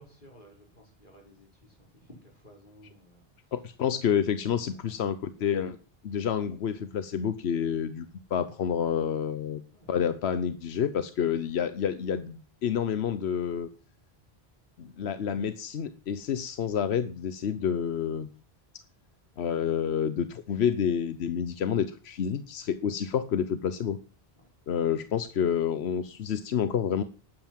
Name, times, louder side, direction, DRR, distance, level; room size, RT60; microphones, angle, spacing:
voice 1, 0.0-3.6 4.1-5.1 9.7-10.1 22.9-23.0 24.4-24.5 24.9-25.1, equal, 50° left, 5.6 m, -56 dB
voice 2, 3.5-5.8 6.0-8.1 8.3-9.6 9.9-13.7 14.8-18.3 19.4-24.0 24.7-27.0, left 8 dB, 90° left, 1.1 m, -29 dB
12.0 x 9.2 x 7.5 m
omnidirectional pair, 1.0 m